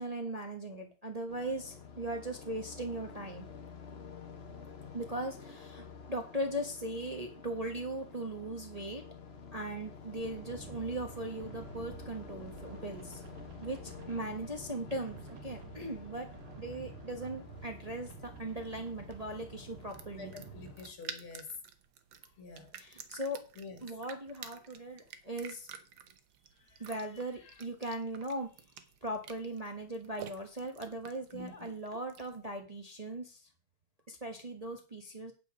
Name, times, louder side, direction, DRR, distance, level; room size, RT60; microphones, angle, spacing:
voice 1, 0.0-3.5 4.9-9.0 9.5-13.2 13.6-20.3 22.8-23.5 23.8-25.7 26.8-28.5 29.0-33.5 34.1-35.3, right 1 dB, 20° right, 1.1 m, -39 dB
sound 1, 1.3-20.9, left 5 dB, 35° left, 1.2 m, -50 dB
sound 2, 10.2-20.7, right 7 dB, 85° right, 2.2 m, -51 dB
sound 3, 17.6-32.4, right 8 dB, 70° right, 1.7 m, -51 dB
voice 2, 20.2-21.5 22.4-22.7 23.6-23.8 26.7-26.8 31.3-31.5, left 4 dB, 75° left, 2.8 m, -47 dB
8.8 x 8.6 x 5.0 m
omnidirectional pair, 2.3 m